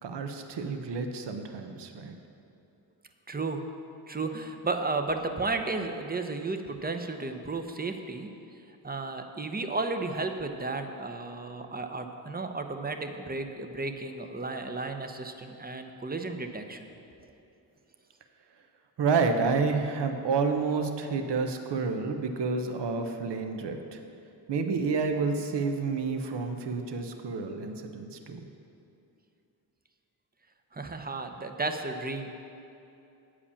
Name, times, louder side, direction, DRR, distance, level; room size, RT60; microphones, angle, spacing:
voice 1, 0.0-2.1 19.0-24.0 24.5-28.4, right 4 dB, 65° right, 6 dB, 0.9 m, -29 dB
voice 2, 3.3-3.6 4.1-8.3 8.8-16.9 30.7-32.3, right 3 dB, 20° right, 6 dB, 0.8 m, -33 dB
8.5 x 4.9 x 7.1 m, 2.7 s
supercardioid pair, 55°, 46 cm